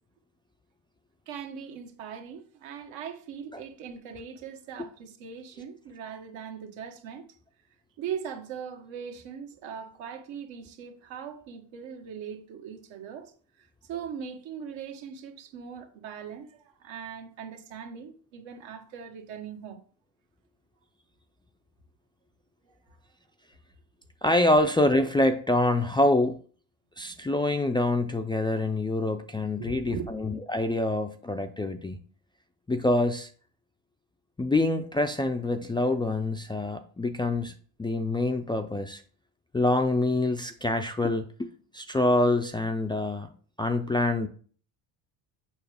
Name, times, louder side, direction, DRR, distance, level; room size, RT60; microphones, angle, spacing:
voice 1, 1.3-7.2 8.0-13.3 13.6-19.8 22.6-22.7 29.6-30.1, right 7 dB, 70° right, 1.4 m, -40 dB
voice 2, 24.2-26.4 27.0-32.0 32.7-33.3 34.4-37.5 37.8-39.0 39.5-43.3 43.6-44.3, left 2 dB, 10° left, 0.4 m, -26 dB
7.1 x 5.6 x 3.4 m
cardioid pair, 105°, 47 cm